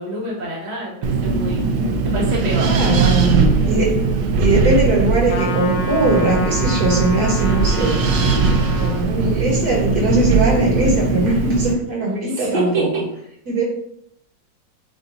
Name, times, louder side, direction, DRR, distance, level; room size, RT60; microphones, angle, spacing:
voice 1, 0.0-1.6 2.0-3.2 12.3-13.0, right 1 dB, 30° right, -5 dB, 0.9 m, -26 dB
Wind, 1.0-11.7, right 4 dB, 70° right, 1.0 m, -19 dB
voice 2, 2.5-4.0 4.4-8.0 8.8-12.9 13.5-13.6, right 2 dB, 55° right, -2 dB, 1.5 m, -20 dB
Trumpet, 5.3-9.0, left 3 dB, 75° left, 1.2 m, -30 dB
7.6 x 2.6 x 2.6 m, 0.72 s
omnidirectional pair, 2.1 m